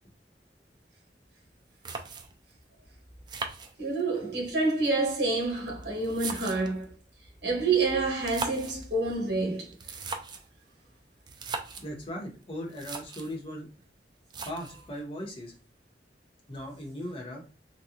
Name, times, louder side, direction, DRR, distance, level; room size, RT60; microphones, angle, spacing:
sound 1, 1.5-1.6 1.8-2.5 3.3-4.2 5.1-6.8 8.1-8.9 9.7-10.5 11.3-11.9 12.4-12.5 12.7-13.4 14.3-14.9, right 4 dB, 25° right, 0.4 m, -38 dB
voice 1, 3.8-6.9 7.4-10.0, right 3 dB, 65° right, 1.3 m, -28 dB
voice 2, 11.8-13.7 14.4-15.5 16.5-17.4, equal, 30° left, 1.0 m, -38 dB
3.7 x 2.3 x 2.9 m
head